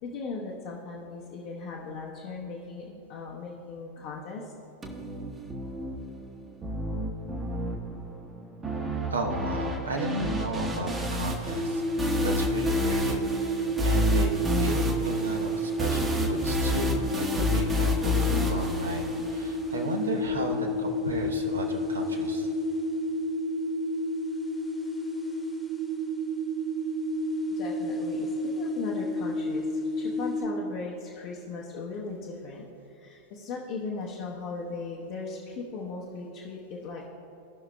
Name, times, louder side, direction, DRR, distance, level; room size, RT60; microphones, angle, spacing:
voice 1, 0.0-4.5 27.5-32.7 32.9-37.0, left 4 dB, 45° left, -3 dB, 0.9 m, -38 dB
sound 1, 4.8-19.8, equal, 15° right, 1.0 m, -30 dB
voice 2, 9.1-11.8 12.2-14.3 14.6-22.5, right 1 dB, 75° right, 2 dB, 0.9 m, -34 dB
sound 2, 11.5-30.5, left 1 dB, 5° left, 1.2 m, -30 dB
16.5 x 5.8 x 2.2 m, 2.9 s
figure-of-eight pair, 90°, 0 cm